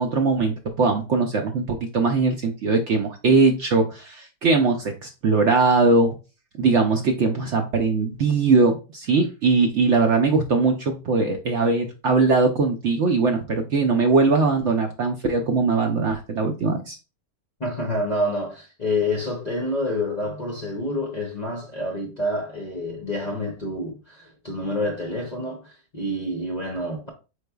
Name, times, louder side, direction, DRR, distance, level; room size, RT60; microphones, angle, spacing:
voice 1, 0.0-6.2 6.6-17.0, right 4 dB, 65° right, 0.8 m, -21 dB
voice 2, 17.6-27.1, left 1 dB, 40° left, 0.6 m, -28 dB
4.9 x 4.3 x 2.2 m
omnidirectional pair, 1.6 m